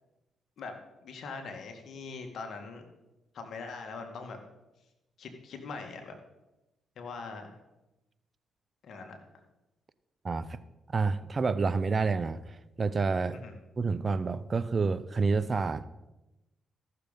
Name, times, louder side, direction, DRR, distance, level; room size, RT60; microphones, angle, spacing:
voice 1, 1.0-2.8 3.3-4.4 5.2-6.2 7.0-7.6 8.8-9.2 13.3-13.5, left 4 dB, 65° left, 5 dB, 2.0 m, -41 dB
voice 2, 10.2-10.6 10.9-13.4 13.8-15.9, right 4 dB, 40° right, 15 dB, 0.6 m, -29 dB
14.5 x 6.9 x 5.2 m, 0.99 s
supercardioid pair, 65°, 0 cm